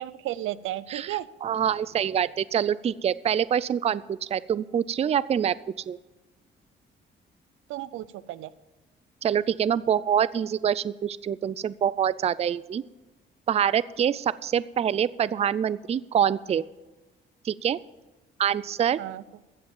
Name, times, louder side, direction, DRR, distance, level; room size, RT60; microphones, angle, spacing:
voice 1, 0.0-1.3 7.7-8.5 19.0-19.2, right 14 dB, 85° right, 16 dB, 0.5 m, -33 dB
voice 2, 0.9-5.5 5.9-6.0 9.2-12.8 13.5-16.6 17.4-17.8 18.4-19.0, right 9 dB, 30° right, 18 dB, 0.4 m, -25 dB
14.0 x 7.8 x 7.2 m, 1.1 s
cardioid pair, 90°, 20 cm